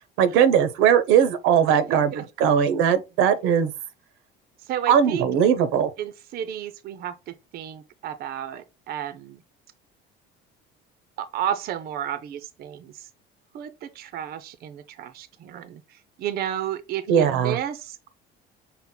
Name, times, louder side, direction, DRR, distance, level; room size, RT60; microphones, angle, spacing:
voice 1, 0.2-3.7 4.9-5.9 17.1-17.6, right 8 dB, 80° right, 0.7 m, -19 dB
voice 2, 1.9-2.3 4.7-5.3 6.0-9.4 11.2-13.1 13.5-18.1, right 10 dB, 50° right, 0.5 m, -32 dB
5.8 x 2.0 x 3.7 m
cardioid pair, 130°, 21 cm